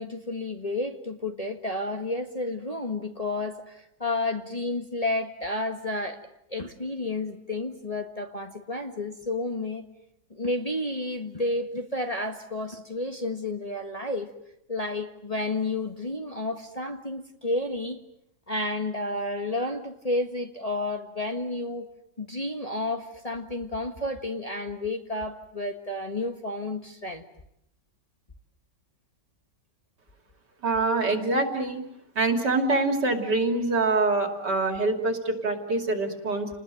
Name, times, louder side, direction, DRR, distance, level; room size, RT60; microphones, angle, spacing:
voice 1, 0.0-6.2 6.5-9.8 10.3-14.3 14.7-18.0 18.5-21.9 22.2-27.2, left 2 dB, 20° left, 4 dB, 1.6 m, -31 dB
voice 2, 30.6-31.8 32.1-36.5, right 3 dB, 70° right, 5 dB, 3.5 m, -25 dB
30.0 x 20.0 x 9.1 m, 0.79 s
omnidirectional pair, 1.9 m